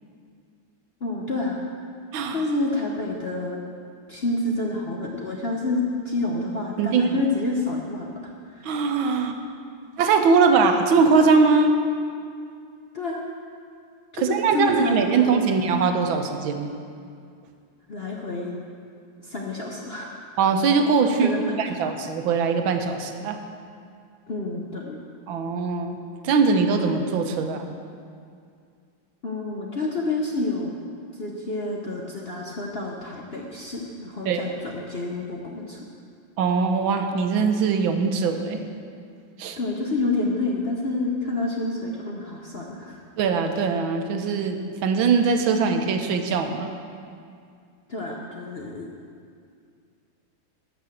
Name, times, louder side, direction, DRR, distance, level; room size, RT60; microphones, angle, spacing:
voice 1, 1.0-1.7 2.3-3.6 4.1-8.7 12.9-13.3 14.1-15.4 17.9-18.6 19.2-20.2 21.2-21.7 24.3-25.0 29.2-30.7 31.1-35.9 39.6-43.0 47.9-48.9, left 2 dB, 50° left, -1 dB, 0.7 m, -28 dB
voice 2, 2.1-2.4 6.8-7.1 8.6-9.4 10.0-11.7 14.2-16.7 20.4-23.4 25.3-26.0 26.2-27.7 34.3-34.4 36.4-38.6 39.4-39.6 43.2-46.7, right 5 dB, 85° right, 6 dB, 1.6 m, -21 dB
12.0 x 5.8 x 7.6 m, 2.3 s
omnidirectional pair, 2.1 m